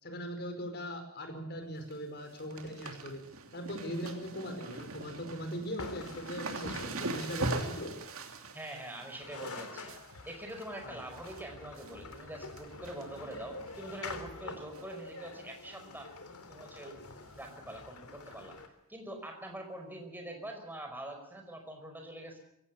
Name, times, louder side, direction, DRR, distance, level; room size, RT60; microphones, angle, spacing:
voice 1, 0.0-3.2 3.5-8.0 10.8-10.9, equal, 50° left, 6 dB, 5.1 m, -40 dB
sound 1, 1.6-1.9 2.2-11.4 11.8-12.2 12.5-13.3 13.7-13.8 14.7-15.0 15.3-15.4 15.7-15.8 17.4-17.5 18.3-18.4, right 2 dB, 65° right, 2.9 m, -41 dB
sound 2, 5.8-7.5 8.9-9.0 9.2-18.7, left 3 dB, 85° left, 3.4 m, -47 dB
voice 2, 8.5-9.9 10.3-16.1 16.5-17.0 17.4-18.6 18.9-22.4, right 1 dB, 10° right, 3 dB, 5.1 m, -44 dB
22.5 x 17.5 x 8.4 m, 0.78 s
head